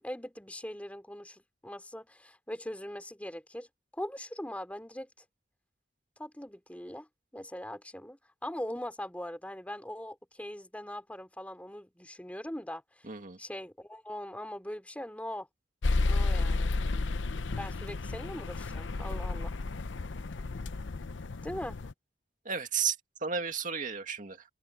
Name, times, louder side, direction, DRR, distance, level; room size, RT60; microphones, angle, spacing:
voice 1, 0.0-3.7 3.9-5.1 6.2-7.1 7.3-12.8 13.4-15.5 16.0-16.7 17.5-19.5 21.4-21.8, left 1 dB, 10° left, 3.4 m, -41 dB
voice 2, 13.0-13.4 22.5-23.0 23.2-24.4, right 6 dB, 45° right, 2.2 m, -33 dB
sound 1, 15.8-21.9, left 3 dB, 80° left, 0.7 m, -32 dB
head